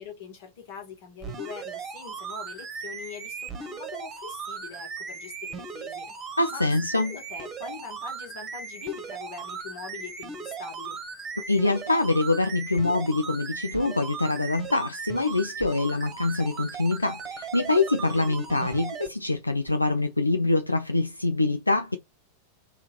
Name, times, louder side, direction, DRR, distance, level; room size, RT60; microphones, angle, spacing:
voice 1, 0.0-6.1 6.5-6.6 7.0-11.0, left 6 dB, 50° left, 1.8 m, -42 dB
sound 1, 1.2-19.1 19.7-19.8, right 5 dB, 25° right, 1.2 m, -38 dB
voice 2, 6.4-7.1 11.5-22.0, left 2 dB, 85° left, 0.4 m, -25 dB
3.7 x 2.8 x 4.4 m
figure-of-eight pair, 90°, 0 cm